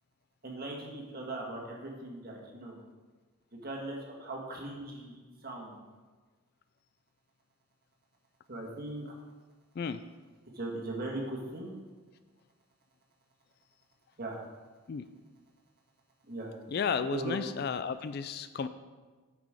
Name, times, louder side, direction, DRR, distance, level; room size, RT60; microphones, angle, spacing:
voice 1, 0.4-2.8 3.5-5.1 5.4-5.8 8.5-9.0 10.6-11.7 14.2-14.4 16.3-16.5 17.1-17.5, right 2 dB, 45° right, -1 dB, 1.7 m, -39 dB
voice 2, 16.7-18.7, left 6 dB, 45° left, 12 dB, 0.3 m, -33 dB
9.4 x 6.0 x 5.0 m, 1.3 s
head